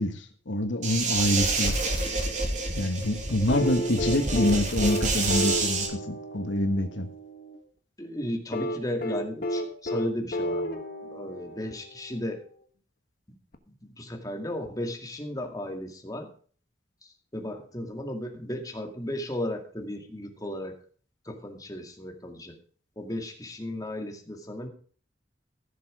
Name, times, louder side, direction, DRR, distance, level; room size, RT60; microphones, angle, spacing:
voice 1, 0.0-1.7 2.8-7.1, left 1 dB, 85° left, 7 dB, 1.5 m, -26 dB
sound 1, 0.8-5.9, right 3 dB, 40° right, 2.8 m, -28 dB
sound 2, 3.5-7.6 8.5-12.1 13.5-13.6, equal, 50° left, 1.4 m, -32 dB
voice 2, 8.0-10.8 11.1-12.4 13.8-16.3 17.0-20.7 21.3-22.6 23.0-24.7, left 1 dB, 20° left, 3 dB, 2.1 m, -35 dB
15.5 x 7.0 x 4.9 m, 0.43 s
head